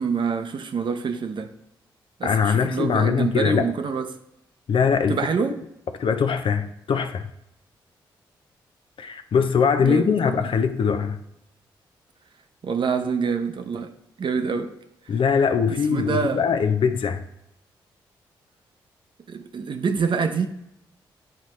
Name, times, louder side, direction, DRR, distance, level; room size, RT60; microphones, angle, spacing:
voice 1, 0.0-1.5 2.2-4.1 5.1-5.6 9.8-10.5 12.6-13.9 14.2-14.7 15.7-16.5 19.3-20.5, right 5 dB, 55° right, 0.6 m, -26 dB
voice 2, 2.2-3.7 4.7-5.2 6.0-7.3 9.0-11.2 15.1-17.2, left 6 dB, 60° left, 0.5 m, -22 dB
9.0 x 4.1 x 3.1 m
supercardioid pair, 45°, 10 cm